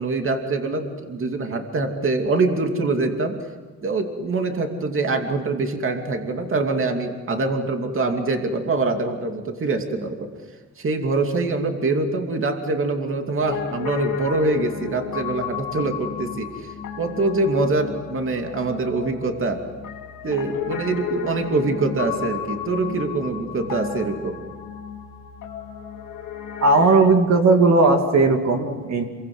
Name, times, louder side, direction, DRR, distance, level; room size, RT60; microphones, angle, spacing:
voice 1, 0.0-3.4 3.8-10.3 10.8-16.7 17.0-19.6 20.2-24.4, right 3 dB, 45° right, 4 dB, 2.7 m, -24 dB
Piano, 13.4-27.1, left 9 dB, 90° left, 2.3 m, -33 dB
voice 2, 26.6-29.0, right 3 dB, 60° right, 3 dB, 2.6 m, -17 dB
28.0 x 23.0 x 8.0 m, 1.4 s
cardioid pair, 125°, 30 cm